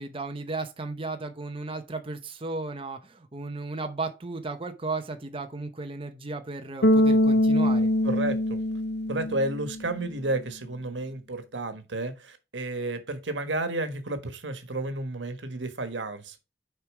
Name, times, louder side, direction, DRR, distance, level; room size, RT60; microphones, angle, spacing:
voice 1, 0.0-7.9, right 3 dB, 30° right, 0.8 m, -35 dB
Bass guitar, 6.8-9.9, left 1 dB, 65° left, 0.7 m, -23 dB
voice 2, 8.0-8.6 9.1-16.4, right 2 dB, 90° right, 1.4 m, -31 dB
6.7 x 4.7 x 4.8 m
head